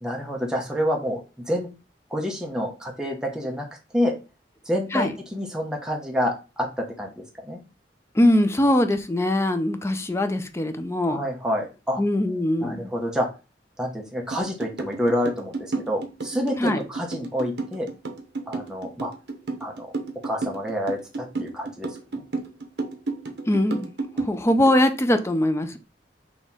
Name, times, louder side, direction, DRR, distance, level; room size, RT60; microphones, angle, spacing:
voice 1, 0.0-1.7 2.1-3.7 3.9-4.1 4.7-7.6 11.1-12.0 12.6-13.3 13.8-17.9 18.5-19.1 19.6-19.9 20.2-22.2, equal, 5° right, 0.9 m, -28 dB
voice 2, 8.2-11.2 12.0-12.9 16.6-16.8 23.5-23.9 24.2-25.8, left 1 dB, 15° left, 0.5 m, -22 dB
sound 1, 14.3-24.8, right 3 dB, 70° right, 0.9 m, -31 dB
4.2 x 3.0 x 3.6 m
head